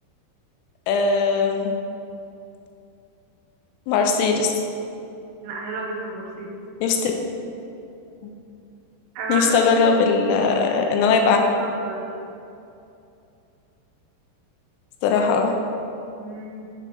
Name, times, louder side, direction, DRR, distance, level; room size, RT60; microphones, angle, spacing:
voice 1, 0.9-1.7 3.9-4.5 6.8-7.1 8.2-8.3 9.3-11.4 15.0-15.6, left 5 dB, 85° left, 3 dB, 3.1 m, -19 dB
voice 2, 5.4-6.5 9.2-10.0 11.0-12.1 16.2-16.7, right 3 dB, 80° right, -1 dB, 3.1 m, -32 dB
8.2 x 4.3 x 5.4 m, 2.6 s
omnidirectional pair, 5.8 m